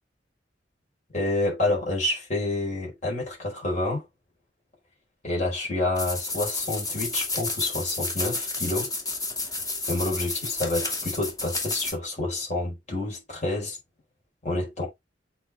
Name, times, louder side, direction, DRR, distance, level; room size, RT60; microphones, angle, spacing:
voice 1, 1.1-4.0 5.2-8.9 9.9-13.8 14.4-14.9, left 2 dB, 45° left, 4.6 m, -28 dB
sound 1, 6.0-11.9, left 2 dB, 20° left, 2.2 m, -31 dB
7.9 x 4.4 x 3.4 m
head